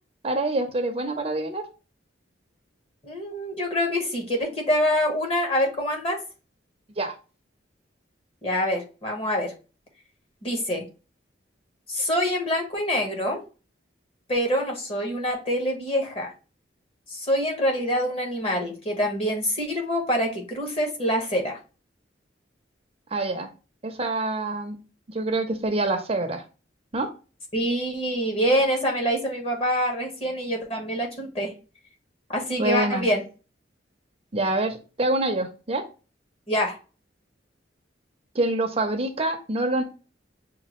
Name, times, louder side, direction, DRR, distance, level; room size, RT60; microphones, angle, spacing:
voice 1, 0.2-1.6 7.0-7.1 23.1-23.5 23.8-24.8 25.1-26.4 26.9-27.1 32.6-33.1 34.3-35.8 38.3-39.8, right 2 dB, 30° right, 5 dB, 0.6 m, -26 dB
voice 2, 3.0-6.2 8.4-9.5 10.4-10.8 11.9-13.4 14.3-16.3 17.1-21.6 27.5-31.5 32.3-33.2 36.5-36.8, equal, 30° left, 1 dB, 1.2 m, -25 dB
6.4 x 2.3 x 3.0 m, 0.33 s
head